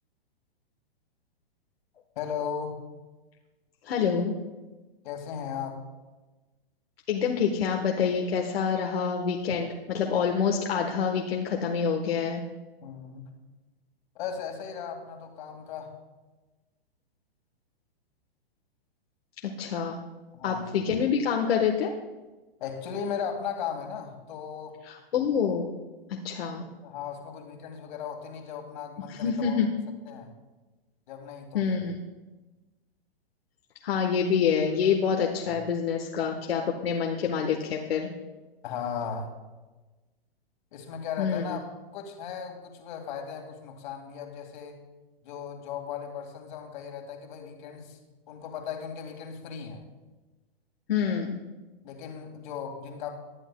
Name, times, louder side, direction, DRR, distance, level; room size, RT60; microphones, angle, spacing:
voice 1, 2.2-2.7 5.0-5.8 12.8-13.3 14.2-15.9 20.3-20.8 22.6-24.8 26.8-29.6 30.1-30.3 31.1-31.8 35.5-35.6 38.6-39.3 40.7-41.6 41.9-44.8 45.2-48.0 48.3-49.8 51.8-53.1, left 7 dB, 50° left, 4 dB, 2.1 m, -36 dB
voice 2, 3.8-4.3 7.1-12.4 19.6-20.0 20.4-21.9 24.8-25.7 26.2-26.6 29.1-29.7 31.5-32.0 33.8-38.1 41.2-41.6 50.9-51.4, left 6 dB, 75° left, 1 dB, 1.3 m, -27 dB
19.5 x 10.0 x 2.3 m, 1.2 s
hypercardioid pair, 140°, 30 cm